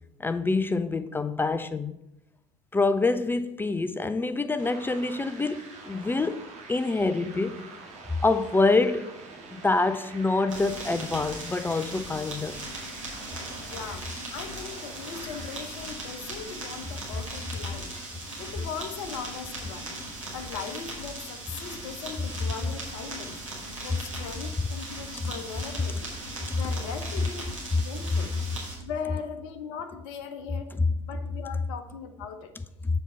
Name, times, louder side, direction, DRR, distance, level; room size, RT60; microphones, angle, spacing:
voice 1, 0.2-1.9 2.7-6.4 6.7-7.6 8.2-9.1 9.5-12.6, left 3 dB, 15° left, 0.5 m, -26 dB
sound 1, 4.6-18.3, right 4 dB, 45° right, 1.7 m, -47 dB
sound 2, 10.5-28.7, right 1 dB, 85° right, 2.0 m, -39 dB
voice 2, 13.6-17.9 18.4-19.9 20.3-23.4 23.8-26.1 26.5-28.3 28.8-32.5, left 6 dB, 60° left, 0.8 m, -39 dB
7.1 x 4.3 x 5.5 m
figure-of-eight pair, 65°, 16 cm